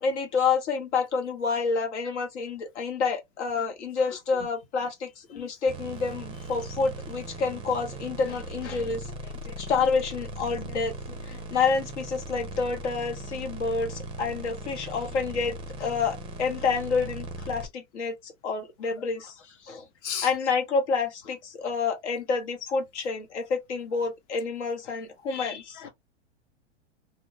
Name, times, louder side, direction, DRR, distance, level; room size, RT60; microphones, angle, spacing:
voice 1, 0.0-9.1 9.5-19.9 20.2-25.9, left 5 dB, 75° left, 0.9 m, -29 dB
voice 2, 5.3-5.5 20.0-20.3 25.8-25.9, left 8 dB, 35° left, 0.6 m, -34 dB
sound 1, 5.7-17.7, right 1 dB, 15° right, 0.5 m, -39 dB
2.1 x 2.1 x 2.7 m
hypercardioid pair, 110°, 35 cm